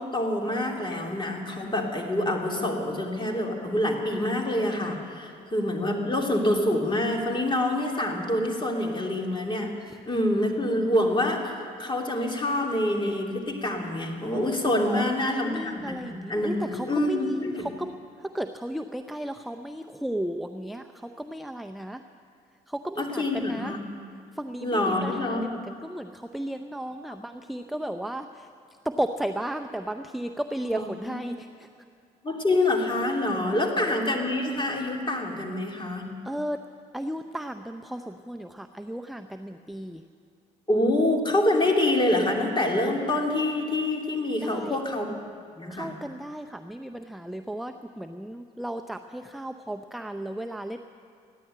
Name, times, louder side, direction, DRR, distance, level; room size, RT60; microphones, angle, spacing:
voice 1, 0.0-9.7 10.1-17.7 23.0-23.8 24.6-25.5 30.7-31.2 32.2-36.1 40.7-45.1 45.6-45.9, left 1 dB, 25° left, 1 dB, 2.9 m, -26 dB
voice 2, 14.9-17.9 18.2-22.0 22.7-23.8 24.3-28.5 28.8-31.7 33.5-33.9 36.3-36.6 36.9-40.0 44.4-44.8 45.7-50.8, right 1 dB, ahead, 7 dB, 0.6 m, -34 dB
15.0 x 10.5 x 9.0 m, 2.3 s
supercardioid pair, 70°, 18 cm